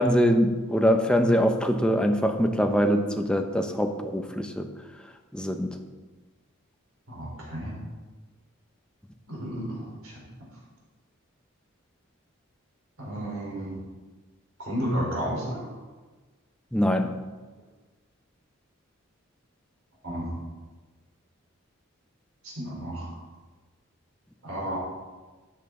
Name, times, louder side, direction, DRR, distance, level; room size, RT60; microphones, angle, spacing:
voice 1, 0.0-4.7 5.3-5.7 16.7-17.1, equal, 5° left, 5 dB, 0.7 m, -23 dB
voice 2, 7.1-7.8 9.3-10.2 13.0-13.8 14.6-15.7 20.0-20.3 22.4-23.2 24.4-24.8, equal, 75° right, -3 dB, 3.8 m, -32 dB
12.0 x 8.1 x 3.7 m, 1.3 s
head